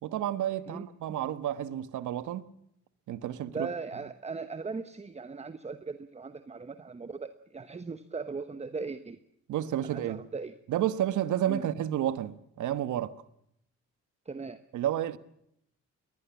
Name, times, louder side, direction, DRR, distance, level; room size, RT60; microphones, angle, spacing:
voice 1, 0.0-2.5 3.1-3.7 9.5-10.2 10.7-13.2 14.7-15.2, right 11 dB, 80° right, 1.3 m, -31 dB
voice 2, 3.5-9.2 9.8-10.5 11.5-11.7 14.3-14.6, right 4 dB, 20° right, 1.1 m, -38 dB
21.5 x 19.5 x 7.2 m
cardioid pair, 90°, 30 cm